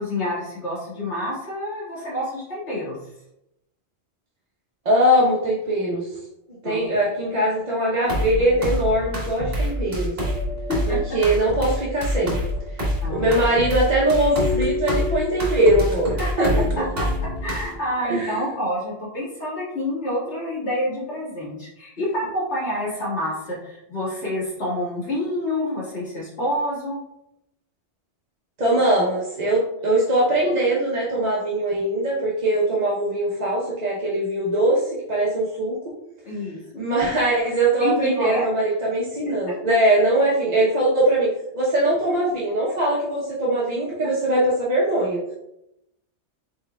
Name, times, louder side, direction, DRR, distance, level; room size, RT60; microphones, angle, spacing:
voice 1, 0.0-3.0 6.6-6.8 10.7-11.2 13.0-13.4 16.2-16.4 16.8-27.0 36.3-36.8 37.8-38.4, left 1 dB, 75° left, -7 dB, 2.1 m, -28 dB
voice 2, 4.8-6.1 6.6-10.2 10.9-12.4 13.1-16.5 18.0-18.5 28.6-35.9 36.8-45.2, right 1 dB, 40° right, -6 dB, 0.8 m, -21 dB
sound 1, 8.0-17.8, left 1 dB, 55° right, 1.4 m, -26 dB
4.7 x 4.4 x 2.2 m, 0.84 s
omnidirectional pair, 1.2 m